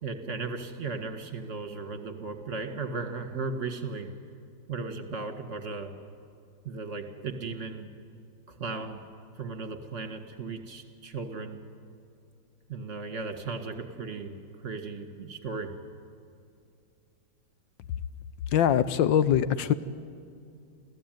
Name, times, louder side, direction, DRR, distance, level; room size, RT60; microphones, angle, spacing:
voice 1, 0.0-4.1 4.7-5.9 6.6-7.9 8.5-9.0 9.4-11.6 12.7-15.7, right 4 dB, 40° right, 5 dB, 2.0 m, -36 dB
voice 2, 18.5-19.7, left 9 dB, 80° left, 13 dB, 1.5 m, -22 dB
28.0 x 16.0 x 9.2 m, 2.5 s
omnidirectional pair, 2.1 m